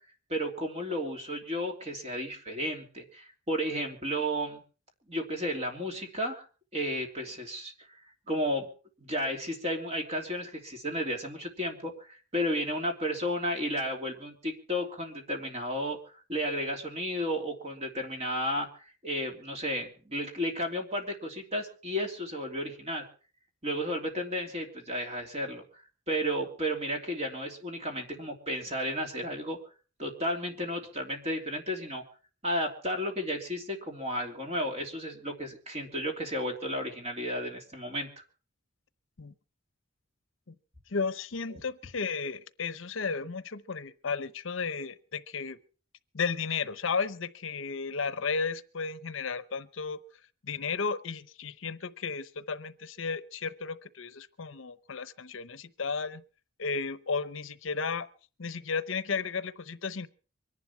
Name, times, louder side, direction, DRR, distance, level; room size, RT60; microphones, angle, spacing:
voice 1, 0.3-4.6 5.1-6.4 6.7-7.9 8.3-8.7 9.0-16.0 16.3-18.7 19.0-23.1 23.6-25.6 26.1-29.6 30.0-32.0 32.4-38.2, equal, 30° right, 3 dB, 3.0 m, -33 dB
voice 2, 40.9-45.6 46.1-50.0 50.4-56.2 56.6-58.1 58.4-60.1, left 5 dB, 70° left, 15 dB, 0.8 m, -34 dB
24.0 x 11.0 x 4.5 m, 0.38 s
head